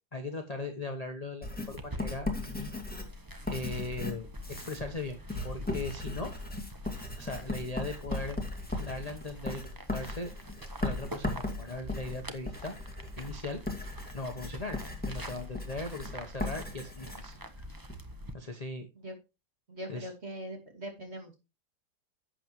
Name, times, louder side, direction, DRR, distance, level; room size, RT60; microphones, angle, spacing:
voice 1, 0.1-2.7 3.5-5.2 5.4-6.3 7.1-8.4 8.8-10.3 10.8-12.8 13.2-13.6 14.1-14.8 15.0-17.6 18.3-18.9 19.9-20.1, left 2 dB, 25° left, 4 dB, 0.9 m, -39 dB
Writing, 1.4-18.0, left 2 dB, 5° left, 1.9 m, -38 dB
sound 1, 1.8-18.3, equal, 20° right, 0.6 m, -46 dB
voice 2, 19.7-21.3, equal, 35° right, 2 dB, 2.9 m, -41 dB
11.5 x 7.8 x 3.0 m, 0.27 s
omnidirectional pair, 1.9 m